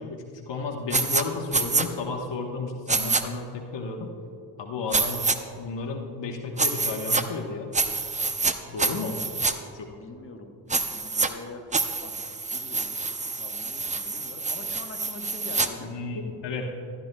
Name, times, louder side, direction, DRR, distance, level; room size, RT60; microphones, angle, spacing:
voice 1, 0.0-4.1 4.6-5.2 5.6-7.7 8.7-9.2 9.7-9.9 15.8-16.7, left 3 dB, 60° left, 2 dB, 1.1 m, -32 dB
sound 1, 0.9-1.2 1.5-1.9 2.9-3.2 4.9-5.4 6.6-7.2 7.7-8.5 8.8-9.5 10.7-11.3 11.7-15.7, right 3 dB, 15° right, 0.6 m, -26 dB
voice 2, 8.9-9.2 9.9-11.6 12.0-15.9, left 3 dB, 25° left, 2 dB, 1.2 m, -44 dB
14.5 x 12.0 x 2.2 m, 2.7 s
supercardioid pair, 60°, 48 cm